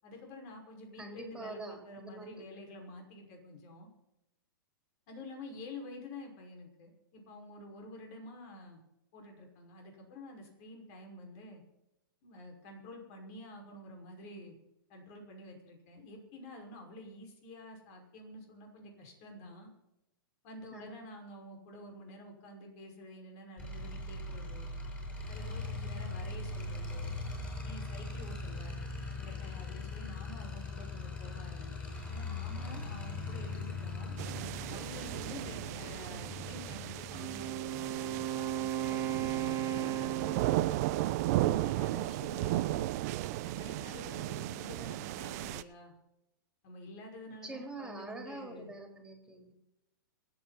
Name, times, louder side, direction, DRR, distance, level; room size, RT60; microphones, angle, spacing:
voice 1, 0.0-3.9 5.1-8.8 9.1-11.6 12.2-14.5 14.9-19.7 20.4-24.7 25.3-27.1 27.6-28.9 29.2-34.1 34.7-39.1 39.4-40.6 41.3-42.9 43.4-45.9 46.6-48.7, left 1 dB, 45° left, 2 dB, 5.6 m, -49 dB
voice 2, 1.0-2.3 20.7-21.0 47.4-49.5, right 2 dB, 5° right, 2 dB, 4.3 m, -44 dB
sound 1, 23.6-39.2, left 3 dB, 15° left, 7.4 m, -41 dB
sound 2, 34.2-45.6, right 16 dB, 45° right, 0.8 m, -35 dB
Wind instrument woodwind instrument, 37.1-41.0, right 11 dB, 25° right, 2.6 m, -35 dB
27.0 x 9.3 x 4.2 m, 0.90 s
hypercardioid pair, 135°, 12 cm